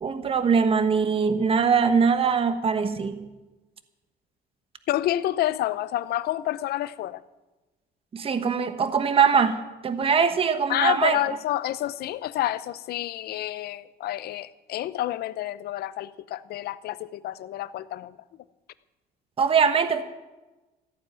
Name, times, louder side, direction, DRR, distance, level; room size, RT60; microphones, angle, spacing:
voice 1, 0.0-3.3 8.1-11.4 19.4-20.0, right 6 dB, 35° right, 10 dB, 1.2 m, -22 dB
voice 2, 4.9-7.2 10.7-18.1, left 13 dB, 70° left, 16 dB, 0.7 m, -29 dB
14.5 x 9.3 x 8.8 m, 1.1 s
cardioid pair, 110°, 17 cm